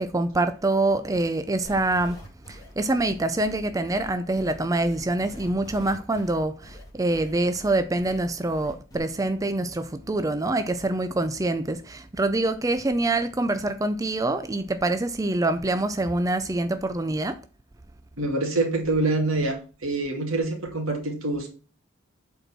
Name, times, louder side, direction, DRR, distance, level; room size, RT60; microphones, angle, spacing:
voice 1, 0.0-2.2 2.5-17.4, right 2 dB, 15° right, 0.4 m, -25 dB
sound 1, 1.6-9.0, left 1 dB, 20° left, 2.8 m, -45 dB
voice 2, 18.2-21.5, right 2 dB, 80° right, 2.4 m, -26 dB
8.0 x 4.5 x 6.0 m
head